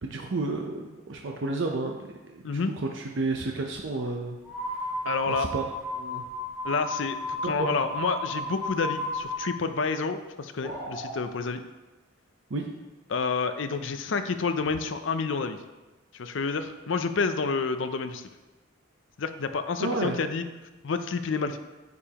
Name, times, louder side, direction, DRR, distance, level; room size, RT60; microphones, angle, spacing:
voice 1, 0.0-2.6 2.9-4.4 5.3-5.6 5.9-6.2 7.4-7.7 12.5-12.7 19.8-20.2, right 2 dB, 65° right, 2 dB, 0.6 m, -31 dB
sound 1, 4.4-9.4, left 1 dB, 5° right, 1.5 m, -33 dB
voice 2, 5.0-5.5 6.6-11.6 13.1-15.6 16.1-18.3 19.2-20.4 20.8-21.6, left 4 dB, 70° left, 9 dB, 0.5 m, -29 dB
sound 2, 10.6-11.2, right 1 dB, 30° right, 2.6 m, -37 dB
9.5 x 6.9 x 2.9 m, 1.1 s
head